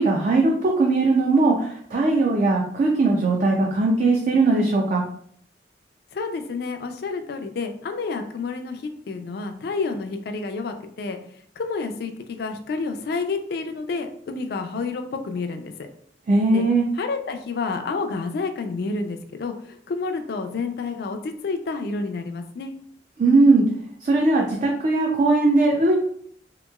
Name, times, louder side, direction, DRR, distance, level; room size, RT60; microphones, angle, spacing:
voice 1, 0.0-5.0 16.3-16.9 23.2-23.7 24.0-25.9, right 3 dB, 45° right, -1 dB, 0.4 m, -19 dB
voice 2, 6.1-11.2 11.6-15.7 16.5-16.6 17.0-22.7, left 4 dB, 60° left, 6 dB, 0.4 m, -29 dB
2.9 x 2.8 x 2.3 m, 0.63 s
head